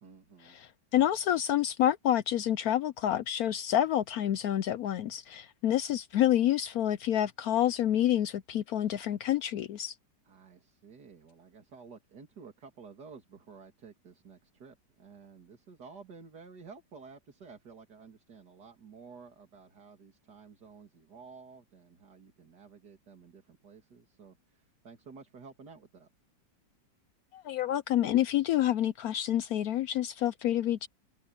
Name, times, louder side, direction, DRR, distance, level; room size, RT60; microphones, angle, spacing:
voice 1, 0.0-0.6 10.2-26.1, right 5 dB, 60° right, 3.0 m, -52 dB
voice 2, 0.6-9.9 27.3-30.9, left 11 dB, 75° left, 0.9 m, -28 dB
omnidirectional pair, 2.0 m